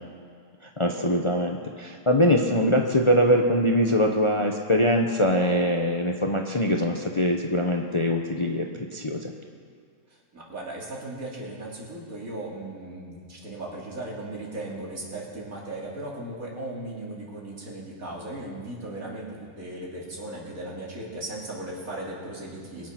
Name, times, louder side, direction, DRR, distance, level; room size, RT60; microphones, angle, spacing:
voice 1, 0.8-9.3, equal, 25° left, 2 dB, 0.8 m, -23 dB
voice 2, 10.3-19.3 19.6-22.9, right 1 dB, 90° right, -4 dB, 3.4 m, -37 dB
22.5 x 8.5 x 5.9 m, 2.2 s
omnidirectional pair, 1.4 m